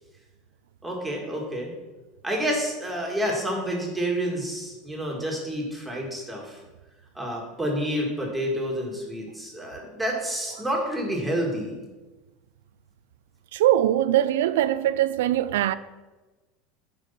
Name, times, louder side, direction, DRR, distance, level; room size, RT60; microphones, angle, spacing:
voice 1, 0.8-1.7 2.2-6.6 7.2-11.8, equal, 5° right, 2.1 m, -29 dB
voice 2, 13.5-15.7, right 12 dB, 85° right, 0.4 m, -22 dB
9.8 x 4.8 x 5.8 m
supercardioid pair, 140°, 0 cm